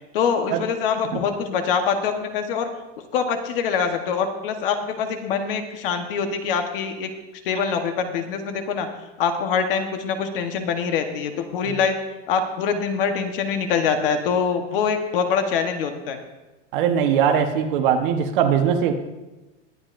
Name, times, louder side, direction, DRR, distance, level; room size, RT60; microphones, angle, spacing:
voice 1, 0.1-2.7 3.1-7.1 7.4-8.9 9.2-12.0 12.3-16.2, left 6 dB, 50° left, 6 dB, 1.2 m, -24 dB
voice 2, 16.7-18.9, right 8 dB, 45° right, 6 dB, 1.1 m, -20 dB
21.0 x 8.9 x 2.6 m, 1.1 s
supercardioid pair, 180°, 35 cm